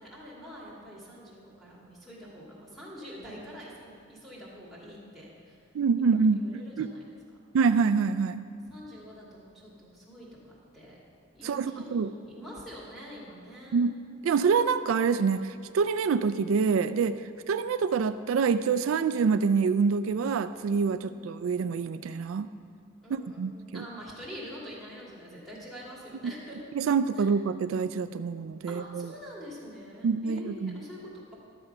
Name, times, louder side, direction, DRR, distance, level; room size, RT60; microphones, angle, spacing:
voice 1, 0.0-5.6 6.0-7.0 8.7-11.0 11.3-13.9 20.9-21.2 23.0-26.6 27.1-27.3 28.6-31.4, equal, ahead, -7 dB, 2.5 m, -45 dB
voice 2, 5.7-6.9 7.5-8.4 11.4-12.1 13.7-13.9 14.2-17.2 17.5-22.5 23.1-23.9 26.2-26.3 26.7-29.1 30.0-30.8, right 5 dB, 85° right, 12 dB, 0.4 m, -26 dB
12.5 x 6.9 x 5.4 m, 2.4 s
head